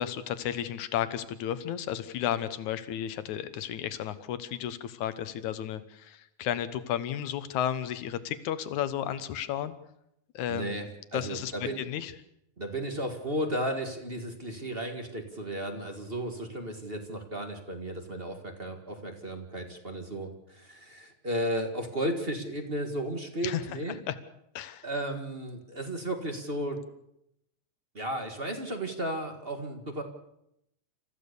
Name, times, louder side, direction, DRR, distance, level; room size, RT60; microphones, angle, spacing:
voice 1, 0.0-9.7 10.3-10.8 11.1-12.1 23.4-23.6 24.1-24.2 24.5-24.8, left 10 dB, 75° left, 12 dB, 2.5 m, -33 dB
voice 2, 10.5-11.8 12.6-24.0 24.8-26.8 27.9-30.0, right 1 dB, 25° right, 5 dB, 1.7 m, -34 dB
28.0 x 14.5 x 6.9 m, 0.79 s
omnidirectional pair, 3.5 m